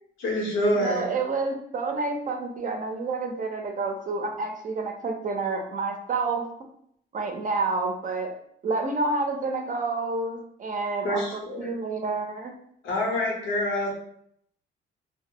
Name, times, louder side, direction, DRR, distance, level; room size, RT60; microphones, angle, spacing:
voice 1, 0.2-1.1 11.0-11.7 12.8-13.9, left 1 dB, 75° left, -2 dB, 0.9 m, -26 dB
voice 2, 0.8-6.4 7.1-8.3 8.6-12.5, right 3 dB, 40° right, 3 dB, 0.5 m, -29 dB
2.1 x 2.0 x 3.7 m, 0.69 s
cardioid pair, 90°, 20 cm